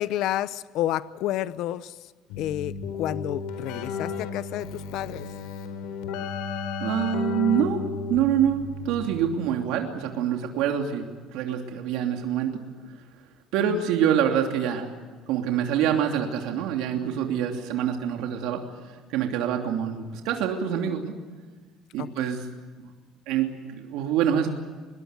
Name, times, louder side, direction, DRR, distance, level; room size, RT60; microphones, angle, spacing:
voice 1, 0.0-2.1 2.4-5.3 13.6-13.8 22.0-22.4, left 13 dB, 55° left, 16 dB, 0.7 m, -30 dB
Keyboard (musical), 2.3-9.6, left 5 dB, 90° left, 4.3 m, -34 dB
voice 2, 6.8-7.8 8.1-11.0 11.3-12.5 13.5-14.9 15.3-18.6 19.1-21.1 21.9-22.4 22.8-22.9 23.3-24.5, right 9 dB, 70° right, 3 dB, 3.0 m, -25 dB
25.0 x 22.0 x 8.3 m, 1.4 s
cardioid pair, 175°, 0 cm